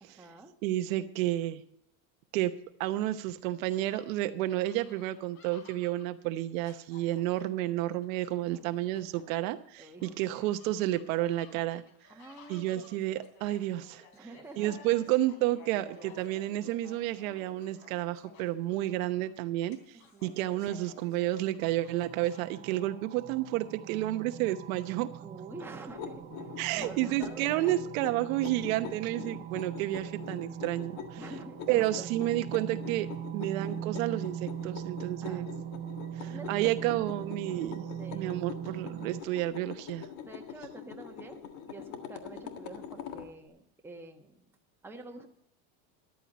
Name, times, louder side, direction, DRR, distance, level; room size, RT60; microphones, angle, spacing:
voice 1, 0.0-0.5 8.4-8.9 9.8-10.2 12.1-13.0 14.1-14.8 20.1-20.4 25.2-27.8 31.2-32.3 35.2-35.4 36.3-36.8 37.5-38.4 40.2-41.4 41.7-44.4 44.8-45.3, right 3 dB, 5° right, 2 dB, 1.3 m, -48 dB
voice 2, 0.6-1.6 2.3-2.5 2.8-11.8 12.5-14.0 14.6-25.1 26.6-31.2 31.7-35.5 36.2-40.1, right 15 dB, 70° right, 9 dB, 1.0 m, -31 dB
sound 1, 3.9-9.2 9.8-22.4, left 4 dB, 85° left, 3.4 m, -56 dB
sound 2, 21.6-39.2, right 10 dB, 25° right, 0.5 m, -41 dB
sound 3, 25.9-43.3, left 8 dB, 60° left, 1.8 m, -44 dB
14.0 x 11.5 x 4.1 m, 0.70 s
supercardioid pair, 145°, 42 cm